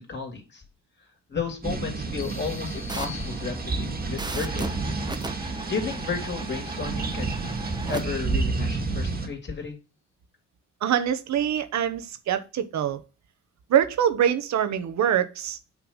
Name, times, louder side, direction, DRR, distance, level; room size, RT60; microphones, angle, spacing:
voice 1, 0.1-0.6 1.3-4.8 5.7-7.4 7.9-9.8, left 5 dB, 35° left, 2.9 m, -33 dB
sound 1, 1.6-9.3, right 3 dB, 30° right, 1.8 m, -30 dB
sound 2, 2.2-4.1, left 8 dB, 85° left, 1.3 m, -45 dB
sound 3, 2.9-8.0, right 2 dB, 15° right, 0.9 m, -38 dB
voice 2, 10.8-13.0 13.7-15.6, right 9 dB, 65° right, 1.1 m, -24 dB
8.4 x 3.3 x 5.4 m
cardioid pair, 90°, 30 cm